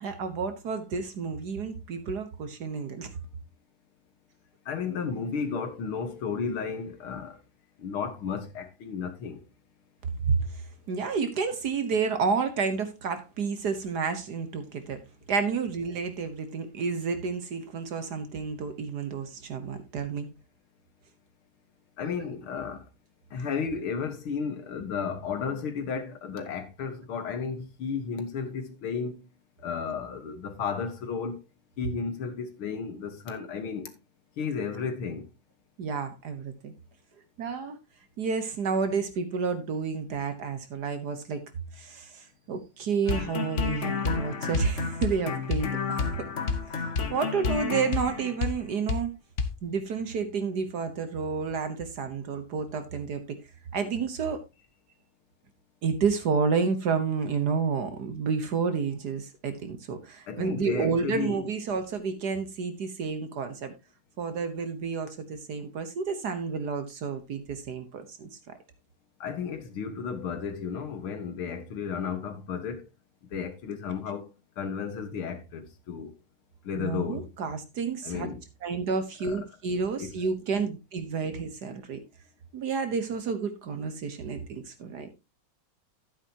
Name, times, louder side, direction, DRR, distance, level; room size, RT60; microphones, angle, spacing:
voice 1, 0.0-3.1 10.3-15.0 15.3-20.3 35.8-36.7 37.4-37.8 38.2-41.4 41.7-46.3 46.7-49.1 49.6-53.4 53.7-54.4 55.8-63.8 64.2-68.3 76.7-78.3 78.6-82.0 82.5-85.1, right 5 dB, 55° right, 1.4 m, -30 dB
voice 2, 4.7-7.4 7.8-9.4 22.0-22.8 23.3-29.3 29.6-31.4 31.8-34.0 34.4-35.3 60.3-61.4 69.2-72.9 73.2-74.3 74.6-76.1 76.6-77.3 78.0-78.4 79.2-79.4 80.0-80.2, left 6 dB, 75° left, 2.3 m, -33 dB
sound 1, 43.1-48.6 48.9-49.0 49.4-49.5, left 5 dB, 45° left, 1.2 m, -30 dB
11.5 x 9.1 x 2.8 m
omnidirectional pair, 2.3 m